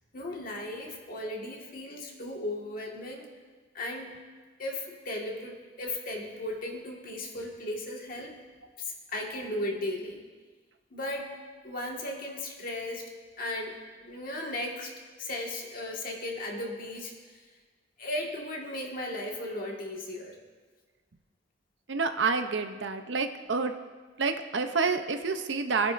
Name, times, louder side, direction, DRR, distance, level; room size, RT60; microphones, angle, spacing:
voice 1, 0.1-3.3 3.7-4.2 4.6-8.4 8.9-10.2 10.9-13.1 13.4-14.9 15.2-17.1 18.0-20.4, left 1 dB, 50° left, 0 dB, 1.8 m, -36 dB
voice 2, 21.9-23.7 24.2-25.9, right 4 dB, 80° right, 7 dB, 0.7 m, -28 dB
21.5 x 9.6 x 2.6 m, 1.4 s
head